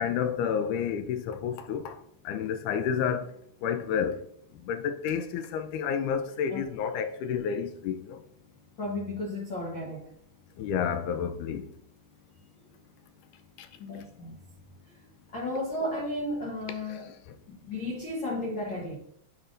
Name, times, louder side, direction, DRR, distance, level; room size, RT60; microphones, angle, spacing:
voice 1, 0.0-2.0 2.3-3.3 3.6-4.2 4.7-8.2 10.6-11.7, left 7 dB, 80° left, 2.0 m, -30 dB
voice 2, 8.8-10.1 13.8-14.4 14.9-15.0 15.3-17.1 17.5-18.9, left 1 dB, 65° left, 1.1 m, -34 dB
9.7 x 4.9 x 2.5 m
omnidirectional pair, 3.7 m